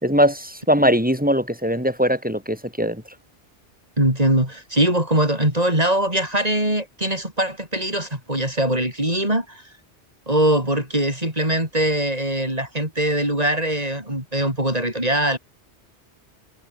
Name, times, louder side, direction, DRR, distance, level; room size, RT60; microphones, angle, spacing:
voice 1, 0.0-3.0, equal, 5° right, 6.1 m, -20 dB
voice 2, 4.0-9.6 10.3-15.4, right 1 dB, 35° right, 7.9 m, -22 dB
omnidirectional pair, 1.2 m